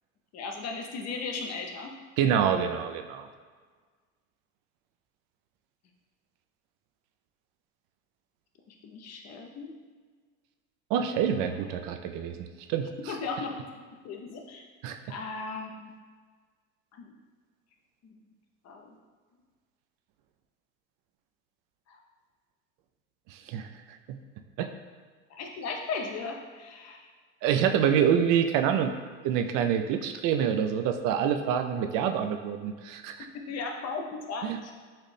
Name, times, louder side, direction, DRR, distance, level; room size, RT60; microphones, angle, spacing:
voice 1, 0.3-1.9 8.7-9.7 13.0-13.7 14.0-14.6 15.1-15.9 16.9-17.1 18.0-18.1 18.6-19.0 21.9-22.0 25.3-27.1 33.2-34.7, left 4 dB, 40° left, 2 dB, 0.6 m, -37 dB
voice 2, 2.2-3.3 10.9-13.1 14.8-15.0 23.3-23.7 24.1-24.2 24.6-24.7 27.4-28.9 29.2-33.3 34.4-34.6, right 8 dB, 50° right, 6 dB, 0.5 m, -26 dB
4.2 x 2.6 x 3.2 m, 1.6 s
hypercardioid pair, 80°, 41 cm